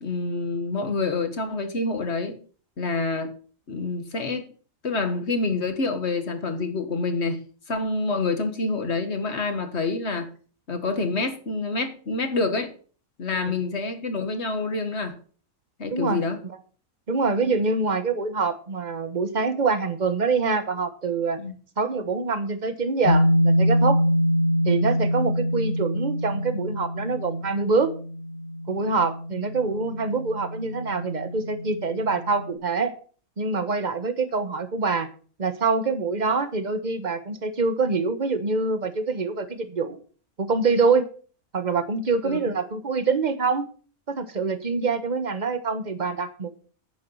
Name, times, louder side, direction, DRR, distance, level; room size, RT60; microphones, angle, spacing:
voice 1, 0.0-2.4 2.8-3.3 3.7-4.5 4.8-7.4 7.7-10.3 10.7-12.7 13.2-15.2 15.8-16.4 21.4-21.5 42.2-42.4, left 3 dB, 50° left, 8 dB, 1.8 m, -27 dB
voice 2, 15.9-16.2 17.1-21.4 21.8-24.0 24.6-27.9 28.7-32.9 33.4-35.1 35.4-40.0 40.4-41.1 41.5-43.7 44.1-46.5, right 4 dB, 30° right, 10 dB, 1.3 m, -25 dB
sound 1, 23.0-32.5, equal, 65° left, 1.7 m, -25 dB
10.5 x 8.9 x 5.6 m, 0.41 s
omnidirectional pair, 1.5 m